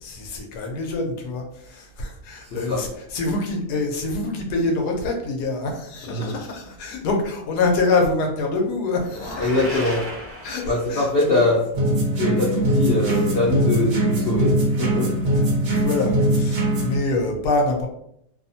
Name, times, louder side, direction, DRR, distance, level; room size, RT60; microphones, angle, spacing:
voice 1, 0.0-10.0 10.4-10.6 10.9-11.4 15.6-17.9, left 3 dB, 90° left, 2 dB, 1.2 m, -25 dB
voice 2, 2.4-2.8 6.0-6.4 9.4-10.0 10.6-11.6 12.1-15.1, left 2 dB, 70° left, -5 dB, 0.5 m, -23 dB
sound 1, 9.0-11.2, equal, 15° right, 0.4 m, -35 dB
sound 2, 11.7-17.0, right 1 dB, 60° right, 0.9 m, -21 dB
2.9 x 2.0 x 2.6 m, 0.74 s
omnidirectional pair, 1.7 m